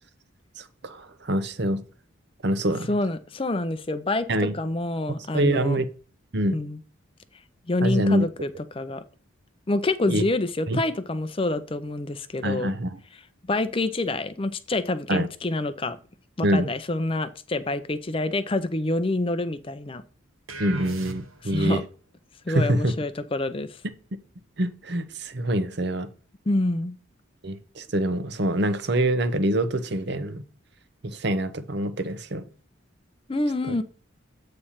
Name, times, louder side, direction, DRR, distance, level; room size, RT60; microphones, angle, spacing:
voice 1, 0.6-1.8 2.4-2.9 4.3-4.5 5.3-5.9 6.3-6.6 7.8-8.2 10.1-10.2 10.7-10.8 12.4-13.0 15.1-15.3 16.4-16.7 20.6-21.8 22.5-22.9 24.6-26.1 27.4-30.4 31.0-32.4 33.7-33.8, right 1 dB, 55° right, 11 dB, 0.8 m, -25 dB
voice 2, 2.9-5.8 6.5-6.8 7.7-9.0 9.7-12.7 13.4-16.0 16.4-20.0 21.4-21.8 22.5-23.8 26.5-27.0 33.3-33.8, left 2 dB, 25° left, 11 dB, 0.5 m, -27 dB
sound 1, 20.5-21.6, right 3 dB, 80° right, 1.0 m, -37 dB
8.5 x 3.3 x 5.6 m, 0.39 s
head